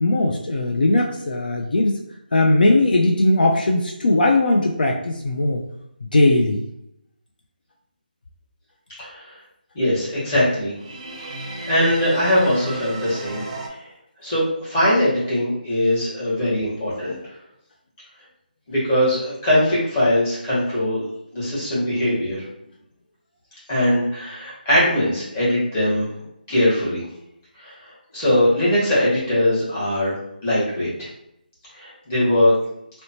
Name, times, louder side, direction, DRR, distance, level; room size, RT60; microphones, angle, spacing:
voice 1, 0.0-2.0 2.3-5.6 6.1-6.6, left 2 dB, 65° left, 1 dB, 0.4 m, -18 dB
voice 2, 9.0-9.3 9.7-10.7 11.7-13.4 13.7-13.9 14.2-17.1 18.7-21.1 21.3-22.4 23.7-26.1 26.5-27.0 27.6-30.2 30.4-31.1 31.7-32.5, left 1 dB, 15° left, -9 dB, 1.1 m, -21 dB
sound 1, 10.7-13.7, right 2 dB, 30° right, 0.4 m, -33 dB
2.8 x 2.1 x 2.7 m, 0.78 s
figure-of-eight pair, 165°, 5 cm